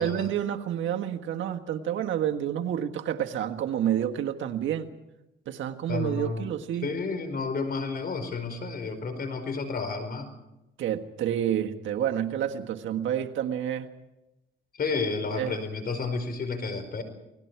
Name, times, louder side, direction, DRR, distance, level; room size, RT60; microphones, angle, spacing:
voice 1, 0.0-4.9 5.5-6.9 10.8-13.9 15.3-15.6, right 10 dB, 75° right, 5 dB, 1.6 m, -29 dB
voice 2, 5.9-6.5 6.8-10.3 14.8-17.0, left 4 dB, 50° left, 9 dB, 4.7 m, -31 dB
28.5 x 19.5 x 4.7 m, 0.94 s
cardioid pair, 90°, 20 cm